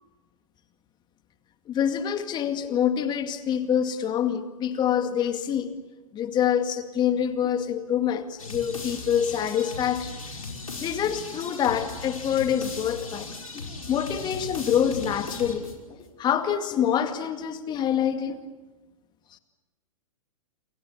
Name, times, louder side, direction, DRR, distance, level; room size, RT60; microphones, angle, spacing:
voice 1, 1.7-5.7 6.1-10.1 10.8-13.3 13.5-18.4, left 9 dB, 25° left, 8 dB, 2.2 m, -26 dB
sound 1, 8.4-16.0, left 3 dB, 85° left, 5.5 m, -37 dB
29.0 x 27.0 x 7.2 m, 1.2 s
figure-of-eight pair, 110°, 18 cm